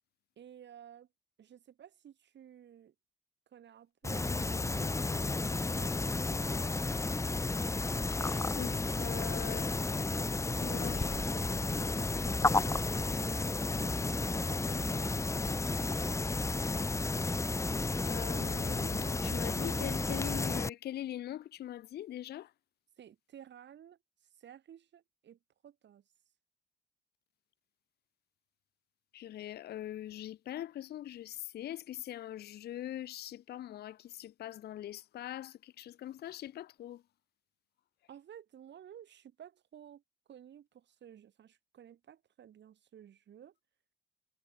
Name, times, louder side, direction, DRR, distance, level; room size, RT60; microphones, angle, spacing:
voice 1, 0.4-1.1 1.4-2.9 3.5-6.7 10.6-13.9 14.2-15.2 23.0-24.0 24.4-26.0 38.1-40.0 40.3-43.5, right 9 dB, 65° right, 4.8 m, -54 dB
sound 1, 4.0-20.7, left 3 dB, 15° left, 0.7 m, -32 dB
voice 2, 8.1-9.7 10.6-11.0 18.1-22.5 29.1-37.0, left 12 dB, 55° left, 0.5 m, -42 dB
cardioid pair, 90°, 20 cm